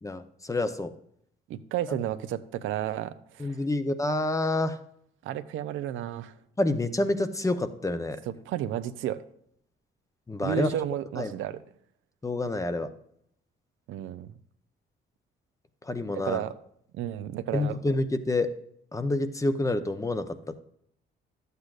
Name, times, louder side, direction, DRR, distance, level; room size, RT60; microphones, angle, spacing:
voice 1, 0.0-0.9 1.9-2.0 3.4-4.8 6.6-8.2 10.3-10.7 11.2-11.3 12.2-12.9 15.9-16.4 17.5-18.5 18.9-20.6, left 2 dB, 15° left, 10 dB, 0.7 m, -28 dB
voice 2, 1.5-3.6 5.2-6.3 8.5-9.2 10.4-11.6 13.9-14.3 16.1-16.5 16.9-17.8, right 11 dB, 85° right, 11 dB, 0.6 m, -32 dB
11.5 x 8.1 x 2.5 m, 0.69 s
cardioid pair, 90°, 20 cm